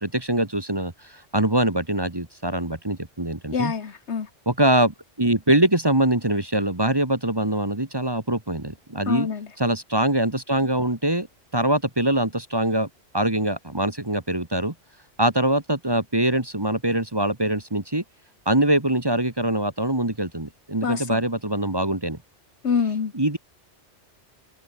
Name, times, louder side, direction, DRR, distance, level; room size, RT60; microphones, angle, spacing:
voice 1, 0.0-3.7 4.5-9.3 9.6-11.3 11.5-12.9 13.1-14.7 15.2-18.0 18.5-22.2 23.1-23.4, right 1 dB, 20° right, 1.6 m, -23 dB
voice 2, 3.5-4.3 9.1-9.5 20.8-21.2 22.6-23.1, left 6 dB, 70° left, 1.7 m, -26 dB
omnidirectional pair, 1.2 m